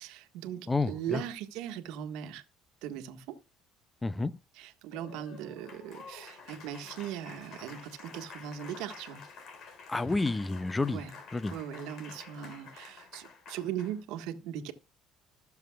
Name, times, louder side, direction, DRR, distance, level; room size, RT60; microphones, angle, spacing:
voice 1, 0.0-2.4 2.8-3.4 4.5-9.2 10.9-11.2 11.5-14.7, right 10 dB, 85° right, 1.5 m, -39 dB
voice 2, 0.7-1.2 4.0-4.3 9.9-11.0 11.3-11.5, left 3 dB, 15° left, 0.8 m, -29 dB
Applause, 4.8-14.0, left 5 dB, 60° left, 3.9 m, -50 dB
20.5 x 7.1 x 2.4 m
cardioid pair, 100°, 0 cm